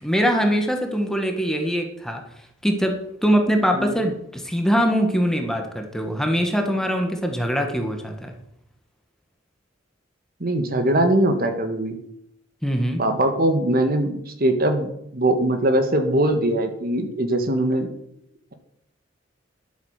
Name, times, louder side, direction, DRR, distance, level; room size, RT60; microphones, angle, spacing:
voice 1, 0.0-2.2 2.6-2.9 3.2-8.3 12.6-13.0, equal, 5° left, 3 dB, 1.6 m, -22 dB
voice 2, 10.4-12.0 13.0-17.9, right 1 dB, 50° right, 7 dB, 1.6 m, -21 dB
11.0 x 8.4 x 6.5 m, 0.76 s
head